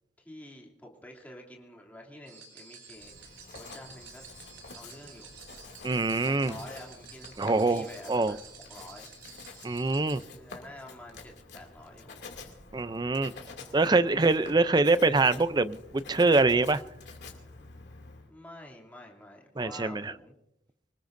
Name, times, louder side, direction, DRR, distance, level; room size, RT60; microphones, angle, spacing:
voice 1, 0.2-4.2 4.7-5.3 6.4-8.4 8.7-9.1 10.3-12.2 18.3-20.3, left 1 dB, 10° left, -1 dB, 2.7 m, -48 dB
sound 1, 2.3-10.2, right 5 dB, 75° right, 3.9 m, -51 dB
Writing, 2.9-18.3, left 3 dB, 65° left, 2.6 m, -49 dB
voice 2, 5.8-6.5 7.4-8.4 9.6-10.2 12.7-13.3 13.7-16.8 19.6-20.1, right 3 dB, 25° right, 14 dB, 0.5 m, -24 dB
25.0 x 20.0 x 2.6 m, 0.83 s
head